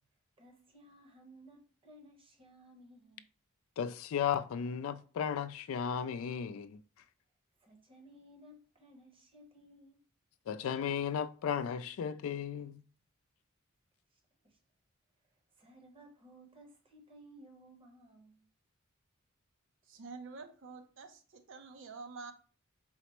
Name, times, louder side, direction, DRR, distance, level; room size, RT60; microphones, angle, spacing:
voice 1, 0.4-3.3 7.6-10.1 14.1-14.6 15.6-18.5, right 1 dB, 25° right, 0.8 m, -58 dB
voice 2, 3.8-6.8 10.5-12.8, left 8 dB, 70° left, 0.3 m, -35 dB
voice 3, 19.9-22.3, right 4 dB, 65° right, 0.6 m, -48 dB
4.2 x 2.0 x 4.3 m
head